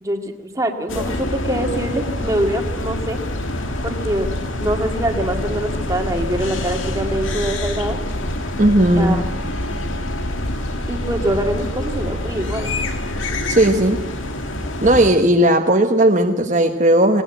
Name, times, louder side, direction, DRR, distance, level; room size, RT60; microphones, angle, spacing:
voice 1, 0.0-3.2 3.8-4.3 4.6-8.0 9.0-9.2 10.9-12.7, right 1 dB, 15° right, 3 dB, 1.9 m, -24 dB
sound 1, 0.9-15.1, left 1 dB, 80° left, 2.1 m, -26 dB
voice 2, 8.6-9.2 13.5-14.0 14.8-17.2, right 1 dB, 35° right, 2 dB, 1.2 m, -15 dB
20.0 x 18.0 x 9.1 m, 1.1 s
head